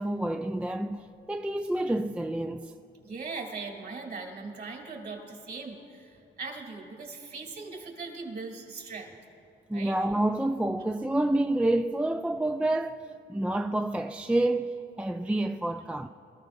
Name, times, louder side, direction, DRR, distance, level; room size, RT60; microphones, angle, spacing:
voice 1, 0.0-2.7 9.7-13.0 13.3-16.1, right 1 dB, 5° right, 0.3 m, -28 dB
voice 2, 3.0-9.1 9.7-10.0, right 4 dB, 50° right, 3.1 m, -40 dB
23.5 x 14.0 x 2.6 m
cardioid pair, 90°, 20 cm